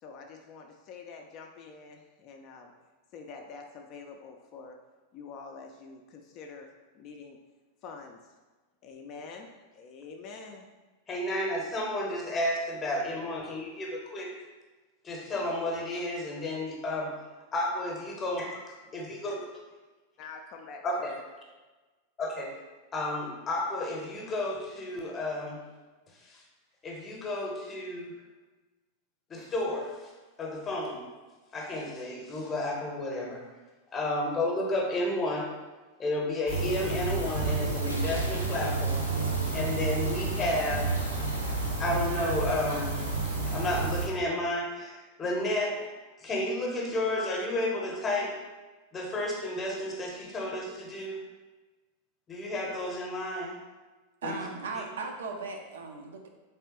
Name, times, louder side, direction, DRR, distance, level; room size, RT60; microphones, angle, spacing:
voice 1, 0.0-2.7 3.1-4.8 5.1-7.4 7.8-8.2 8.8-10.7 20.2-21.2, left 4 dB, 40° left, 3 dB, 0.4 m, -46 dB
voice 2, 11.1-14.3 15.0-17.1 17.5-18.6 18.9-19.5 20.8-21.1 22.2-22.5 22.9-25.6 26.3-26.4 26.8-28.1 29.3-30.1 30.4-31.0 31.5-33.4 33.9-35.5 36.0-39.1 39.5-41.0 41.8-48.3 48.9-51.2 52.3-53.6 54.2-54.4 54.8-54.9, left 1 dB, 25° left, 0 dB, 0.8 m, -32 dB
Toilet flush, 36.4-41.7, equal, 90° left, 0.5 m, -43 dB
sound 1, 36.5-44.1, right 3 dB, 80° right, 1.0 m, -30 dB
voice 3, 54.2-56.3, right 4 dB, 65° right, 3 dB, 0.5 m, -37 dB
3.5 x 3.3 x 2.9 m, 1.2 s
figure-of-eight pair, 90°, 0 cm